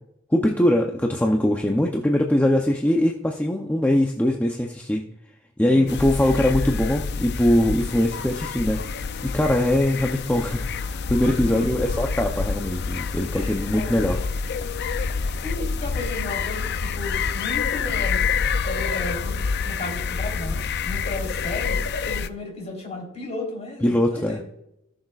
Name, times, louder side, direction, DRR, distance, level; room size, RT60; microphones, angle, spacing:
voice 1, 0.3-5.0 5.6-8.8 9.2-14.2 23.8-24.4, left 1 dB, 10° left, 1 dB, 0.6 m, -22 dB
sound 1, 5.9-22.3, left 5 dB, 55° left, 0.5 m, -27 dB
voice 2, 11.2-11.7 13.3-14.2 15.0-18.3 18.6-19.4 19.6-24.4, left 2 dB, 35° left, -1 dB, 3.5 m, -34 dB
17.5 x 6.5 x 2.4 m, 0.81 s
head